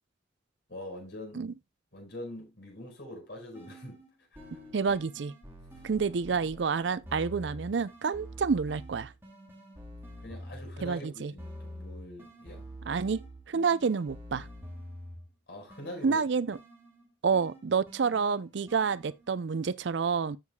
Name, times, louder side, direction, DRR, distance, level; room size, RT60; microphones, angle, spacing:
voice 1, 0.7-1.5 1.9-4.0 10.2-12.7 15.5-16.2, left 1 dB, 60° left, 4.9 m, -43 dB
sound 1, 3.6-4.1 4.4-11.0 11.4-15.3 15.7-19.4, equal, 10° right, 3.3 m, -47 dB
voice 2, 4.7-5.3 5.8-9.1 10.8-11.3 12.9-13.2 13.5-14.5 16.0-16.6 17.2-20.4, right 5 dB, 70° right, 0.5 m, -28 dB
14.0 x 6.6 x 2.2 m
head